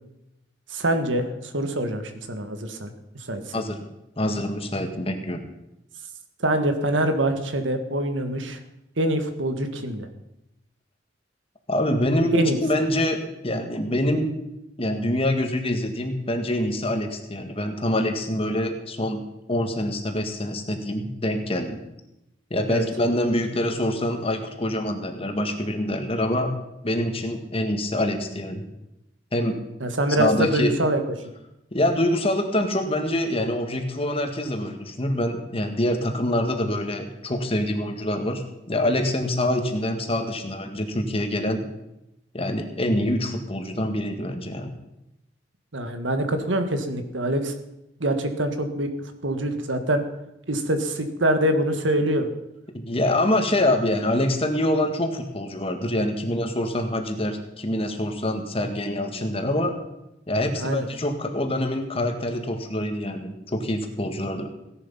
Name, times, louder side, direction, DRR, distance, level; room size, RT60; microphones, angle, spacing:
voice 1, 0.7-2.9 3.2-3.6 6.4-8.6 9.0-10.1 12.3-12.6 22.7-22.9 29.8-31.3 45.7-47.5 48.0-48.9 49.2-50.0 50.5-52.3 60.5-60.9, right 1 dB, 90° right, 8 dB, 1.8 m, -24 dB
voice 2, 4.2-5.4 11.7-14.3 14.8-19.2 19.5-21.8 22.5-26.5 26.8-28.6 29.3-29.6 30.2-30.7 31.7-41.6 42.3-44.7 52.7-59.7 60.3-64.5, left 1 dB, 30° left, 5 dB, 1.8 m, -25 dB
16.5 x 11.0 x 5.6 m, 0.89 s
head